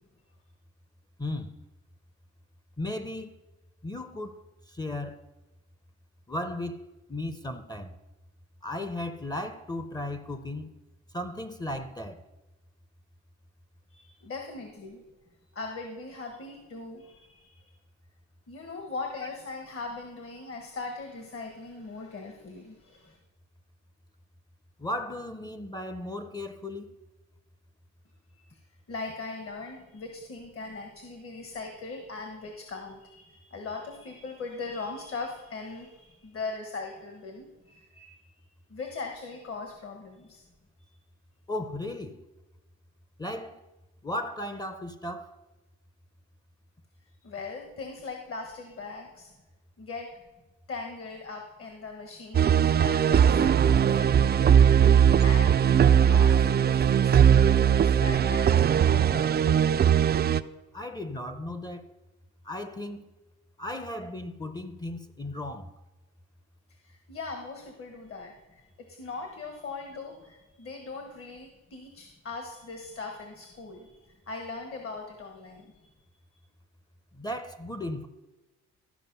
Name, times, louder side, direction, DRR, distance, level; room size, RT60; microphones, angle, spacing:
voice 1, 1.2-1.5 2.8-3.3 3.8-5.3 6.3-8.0 8.6-10.7 11.1-12.2 24.8-27.0 41.5-42.2 43.2-43.6 44.0-45.4 60.7-61.9 62.4-63.1 63.6-65.7 77.1-78.1, left 1 dB, 15° left, 0.6 m, -36 dB
voice 2, 13.9-15.0 15.5-17.7 18.5-23.2 28.5-28.6 28.9-38.1 38.7-40.4 47.2-49.3 49.8-50.1 50.7-54.9 55.2-59.3 66.8-74.0 74.3-76.0, left 3 dB, 45° left, 1.4 m, -40 dB
sound 1, 52.3-60.4, right 8 dB, 35° right, 0.4 m, -20 dB
13.0 x 5.3 x 5.5 m
cardioid pair, 90°, 30 cm